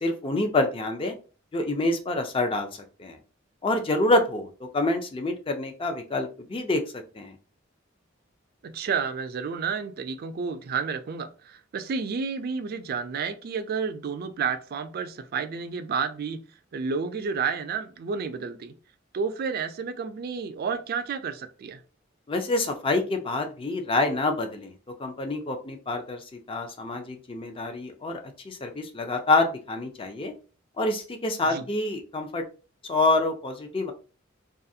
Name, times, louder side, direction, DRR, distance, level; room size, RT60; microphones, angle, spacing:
voice 1, 0.0-1.1 1.5-2.7 3.0-3.2 3.6-7.3 22.3-24.7 25.0-30.3 30.8-32.4 32.8-33.9, left 2 dB, 25° left, 0.4 m, -27 dB
voice 2, 8.6-16.4 16.7-18.8 19.1-21.8 31.5-31.6, right 5 dB, 50° right, 0.3 m, -31 dB
2.4 x 2.4 x 2.6 m
head